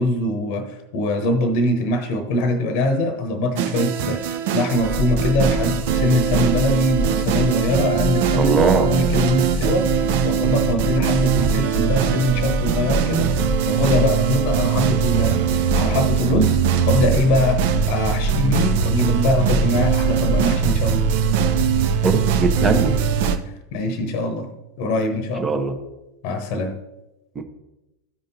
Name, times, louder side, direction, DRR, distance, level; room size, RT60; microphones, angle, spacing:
voice 1, 0.0-16.6 16.9-21.1 23.7-24.5 24.8-25.5 26.2-26.7, left 1 dB, 45° left, 8 dB, 1.0 m, -22 dB
sound 1, 3.6-23.4, right 10 dB, 50° right, 0.5 m, -22 dB
sound 2, 4.7-23.3, equal, 15° left, 1.3 m, -26 dB
voice 2, 8.3-8.9 22.0-22.9 25.4-25.7 27.3-27.4, right 4 dB, 20° right, 6 dB, 0.9 m, -20 dB
13.5 x 5.2 x 2.7 m, 0.99 s
figure-of-eight pair, 90°, 0 cm